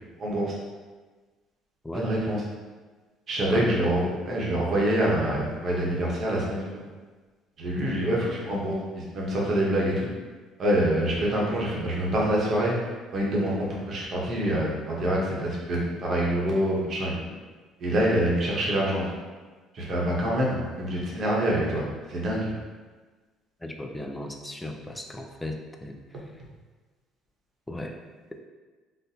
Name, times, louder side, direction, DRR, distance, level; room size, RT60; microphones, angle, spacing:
voice 1, 0.2-0.6 1.9-2.4 3.3-6.9 7.6-10.1 10.6-17.1 17.8-19.1 19.7-21.8 22.1-22.5, right 1 dB, 45° right, -4 dB, 0.8 m, -26 dB
voice 2, 23.6-26.2 27.7-28.0, left 1 dB, 10° left, 3 dB, 0.3 m, -36 dB
4.0 x 2.1 x 2.7 m, 1.3 s
cardioid pair, 135°, 0 cm